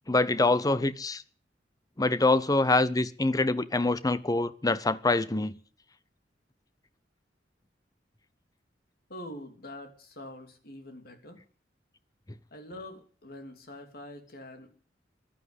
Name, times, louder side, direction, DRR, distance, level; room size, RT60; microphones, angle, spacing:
voice 1, 0.1-1.2 2.0-5.5, left 2 dB, 20° left, 0.7 m, -25 dB
voice 2, 9.1-11.4 12.5-14.7, left 1 dB, 60° left, 3.1 m, -44 dB
15.0 x 12.0 x 8.1 m
head